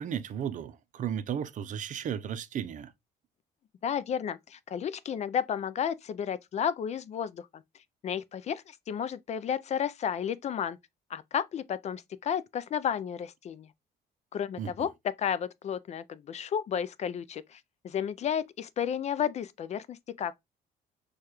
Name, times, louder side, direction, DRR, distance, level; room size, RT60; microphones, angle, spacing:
voice 1, 0.0-2.9 14.6-14.7, right 8 dB, 50° right, 0.5 m, -34 dB
voice 2, 3.8-7.6 8.0-10.8 11.1-13.7 14.3-14.9 15.2-17.6 17.8-20.3, left 8 dB, 40° left, 0.4 m, -32 dB
6.5 x 2.3 x 2.9 m
cardioid pair, 110°, 17 cm